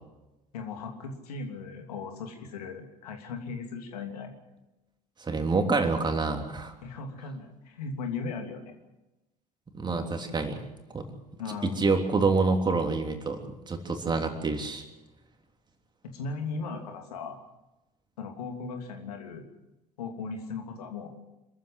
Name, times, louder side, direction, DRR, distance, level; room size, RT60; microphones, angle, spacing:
voice 1, 0.5-4.3 6.8-8.7 11.4-11.9 16.1-17.4 18.2-19.4 20.0-21.1, left 4 dB, 70° left, 4 dB, 3.0 m, -37 dB
voice 2, 5.2-6.7 9.7-10.6 10.9-11.1 11.8-14.8, right 4 dB, 20° right, 4 dB, 3.3 m, -27 dB
26.5 x 15.0 x 7.8 m, 0.99 s
figure-of-eight pair, 65°, 21 cm